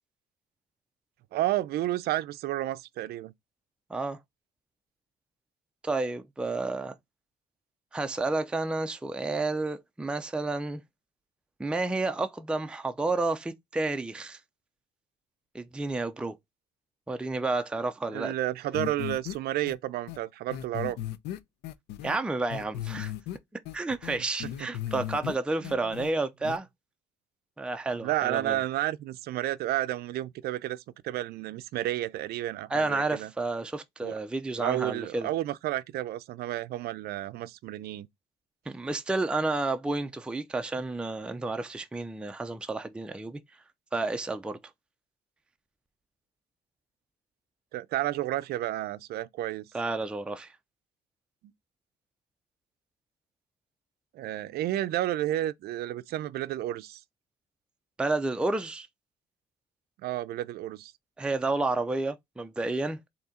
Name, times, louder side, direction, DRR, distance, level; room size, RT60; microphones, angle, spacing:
voice 1, 1.3-3.3 18.1-21.0 25.6-25.8 28.0-33.3 34.0-34.2 34.6-38.1 47.7-49.7 54.1-57.0 60.0-60.9, right 14 dB, 70° right, 0.5 m, -31 dB
voice 2, 5.8-6.9 7.9-10.8 11.6-14.4 15.5-16.4 17.1-18.3 22.0-23.1 23.7-26.7 27.6-28.6 32.7-35.3 38.7-43.4 43.9-44.6 49.7-50.5 58.0-58.9 61.2-63.0, right 2 dB, 5° right, 0.5 m, -30 dB
sound 1, 18.7-19.4 19.7-19.8 20.1-20.2 20.5-22.2 22.5-23.4 23.7-25.4 25.6-26.1 26.4-26.6, left 12 dB, 80° left, 0.5 m, -36 dB
4.1 x 2.8 x 3.6 m
cardioid pair, 110°, 17 cm